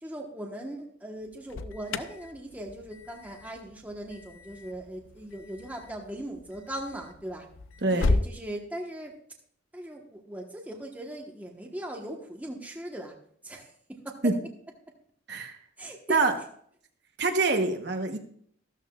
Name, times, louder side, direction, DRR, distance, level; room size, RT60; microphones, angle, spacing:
voice 1, 0.0-7.5 7.9-9.1 9.7-13.1 13.4-14.4 15.8-16.3, right 1 dB, 10° right, 1 dB, 1.2 m, -39 dB
Alarm, 1.2-8.3, left 2 dB, 85° left, 0.6 m, -34 dB
voice 2, 17.2-18.2, right 3 dB, 55° right, 4 dB, 1.0 m, -25 dB
13.5 x 13.0 x 2.4 m, 0.63 s
head